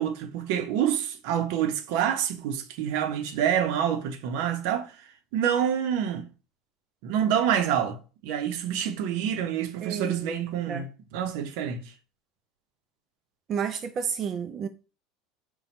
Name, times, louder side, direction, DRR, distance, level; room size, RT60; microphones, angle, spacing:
voice 1, 0.0-4.9 5.3-6.3 7.0-10.9 11.1-11.9, right 9 dB, 70° right, 0.7 m, -27 dB
voice 2, 9.8-10.4 10.7-10.9 13.5-14.7, right 7 dB, 40° right, 0.4 m, -31 dB
4.1 x 2.3 x 4.3 m
supercardioid pair, 115°, 0 cm